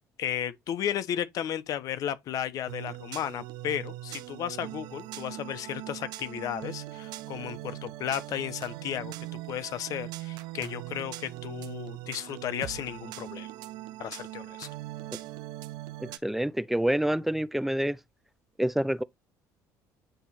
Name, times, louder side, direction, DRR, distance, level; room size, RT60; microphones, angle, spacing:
voice 1, 0.2-13.5 14.0-14.7, left 10 dB, 55° left, 0.9 m, -34 dB
sound 1, 2.7-16.2, right 16 dB, 80° right, 0.7 m, -41 dB
voice 2, 16.0-18.0 18.6-19.0, right 1 dB, 5° right, 0.4 m, -27 dB
9.1 x 3.1 x 4.3 m
cardioid pair, 125°, 7 cm